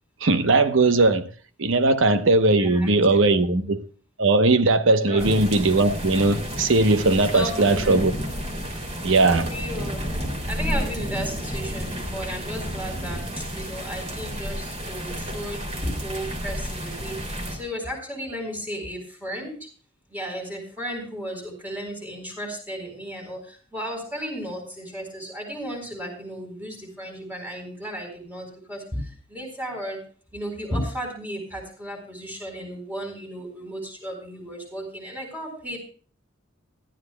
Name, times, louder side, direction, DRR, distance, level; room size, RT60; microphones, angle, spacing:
voice 1, 0.2-1.3 1.6-3.8 4.2-8.1 9.0-9.5, right 2 dB, 70° right, 0.9 m, -19 dB
voice 2, 2.5-3.4 5.1-5.2 7.3-7.9 9.3-10.0 10.5-19.7 20.1-30.0 30.3-35.8, equal, 10° right, 4.2 m, -34 dB
sound 1, 5.2-17.6, equal, 35° right, 3.0 m, -31 dB
20.0 x 13.0 x 2.3 m
head